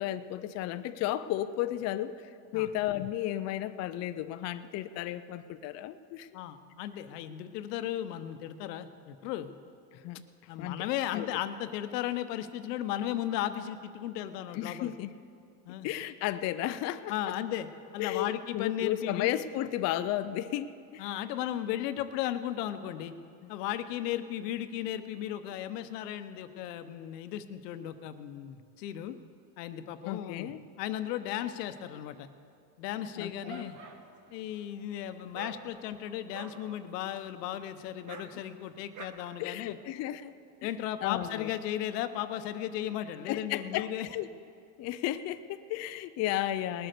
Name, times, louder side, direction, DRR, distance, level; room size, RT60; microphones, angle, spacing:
voice 1, 0.0-6.3 9.9-10.2 10.6-10.8 11.1-11.3 14.5-15.1 15.8-17.1 18.0-21.0 30.0-30.6 33.2-33.7 39.4-40.3 40.6-40.7 41.0-41.5 43.3-44.3 44.8-46.9, left 13 dB, 35° left, 11 dB, 0.4 m, -33 dB
voice 2, 6.3-9.5 10.5-14.9 15.7-15.9 17.1-17.7 17.9-19.3 21.0-23.1 23.5-29.2 29.6-30.5 30.8-32.3 32.8-33.8 34.3-39.8 40.6-44.1, left 11 dB, 85° left, 10 dB, 0.9 m, -35 dB
Dog, 33.0-39.1, right 6 dB, 40° right, 1.3 m, -49 dB
19.5 x 7.8 x 6.7 m, 2.5 s
supercardioid pair, 125°, 47 cm